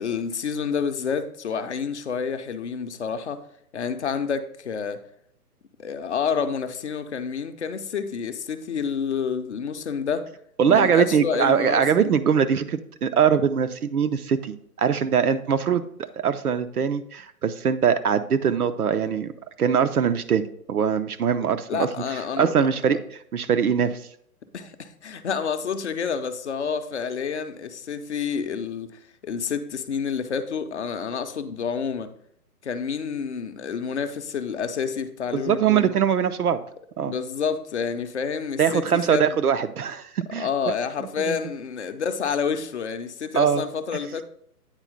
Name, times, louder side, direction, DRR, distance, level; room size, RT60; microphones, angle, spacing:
voice 1, 0.0-3.4 3.7-5.0 5.8-10.3 10.7-12.1 19.0-19.2 21.7-22.5 22.9-23.0 24.5-32.1 32.6-35.9 37.0-39.4 40.4-44.2, left 6 dB, 50° left, 9 dB, 0.6 m, -29 dB
voice 2, 10.6-19.3 19.6-21.9 22.4-23.9 35.3-36.6 37.0-37.1 38.6-40.5 41.3-41.4 43.3-43.6, right 7 dB, 70° right, 10 dB, 0.7 m, -22 dB
8.9 x 4.2 x 3.9 m, 0.66 s
figure-of-eight pair, 135°, 46 cm